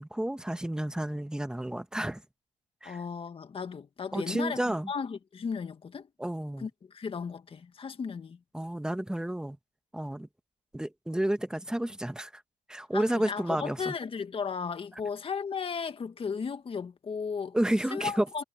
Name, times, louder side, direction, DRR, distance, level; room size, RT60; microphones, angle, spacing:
voice 1, 0.0-2.2 2.8-3.0 4.1-4.9 6.2-6.7 8.5-9.6 9.9-10.3 10.7-12.4 12.7-13.9 17.5-18.3, right 1 dB, 5° right, 1.3 m, -31 dB
voice 2, 2.8-4.6 4.9-6.1 6.6-8.4 12.9-17.6 17.9-18.4, left 6 dB, 35° left, 1.9 m, -35 dB
cardioid pair, 110°, 17 cm